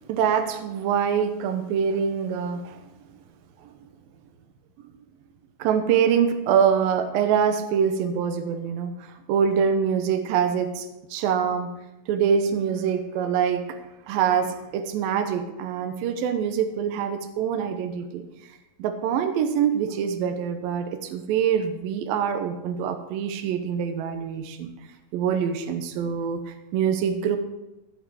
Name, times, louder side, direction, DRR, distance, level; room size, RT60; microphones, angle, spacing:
voice 1, 0.1-2.8 5.6-8.9 9.3-11.7 12.1-13.8 14.1-18.2 18.8-24.7 25.1-27.4, right 7 dB, 85° right, 8 dB, 2.0 m, -24 dB
14.5 x 7.4 x 4.8 m, 0.98 s
omnidirectional pair, 5.4 m